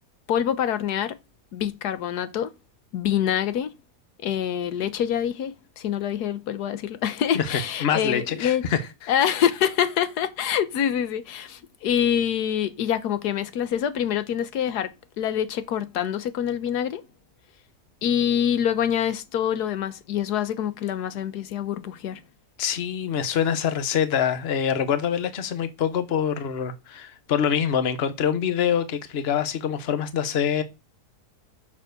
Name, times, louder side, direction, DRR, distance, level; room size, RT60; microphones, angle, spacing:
voice 1, 0.3-1.2 1.5-2.5 2.9-3.7 4.2-8.6 9.1-17.0 18.0-22.2, left 9 dB, 85° left, 1.3 m, -25 dB
voice 2, 7.3-8.8 22.6-30.6, left 8 dB, 45° left, 1.1 m, -25 dB
6.7 x 5.9 x 6.6 m
omnidirectional pair, 1.7 m